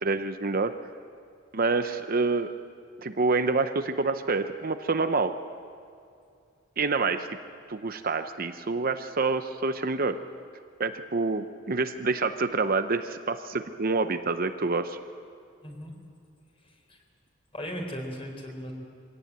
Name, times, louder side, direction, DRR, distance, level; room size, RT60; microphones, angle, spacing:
voice 1, 0.0-0.7 1.5-2.5 3.0-5.3 6.8-7.3 7.7-10.2 10.8-15.0, right 3 dB, 45° right, 9 dB, 0.8 m, -27 dB
voice 2, 15.6-15.9 16.6-17.0 17.5-18.7, equal, 30° left, 2 dB, 4.1 m, -37 dB
24.0 x 17.0 x 9.0 m, 2.4 s
head